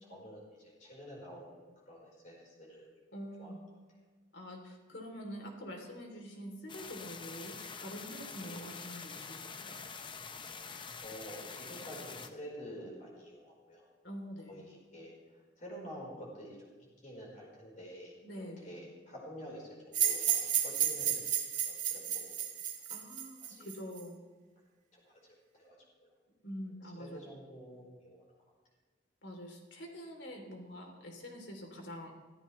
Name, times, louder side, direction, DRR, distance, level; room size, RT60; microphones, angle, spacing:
voice 1, 0.1-2.9 3.4-3.5 8.4-8.6 11.0-13.9 14.5-21.3 21.6-22.5 23.5-23.7 24.9-26.1 26.9-28.2, equal, 40° left, -3 dB, 4.6 m, -49 dB
voice 2, 3.1-3.6 4.3-9.8 14.0-14.6 18.2-18.9 22.9-24.2 26.4-27.2 29.2-32.1, equal, 70° left, 2 dB, 3.4 m, -46 dB
sound 1, 6.7-12.3, left 5 dB, 25° left, 0.7 m, -46 dB
sound 2, 19.9-24.0, right 9 dB, 40° right, 1.9 m, -32 dB
24.0 x 14.5 x 3.3 m, 1.4 s
head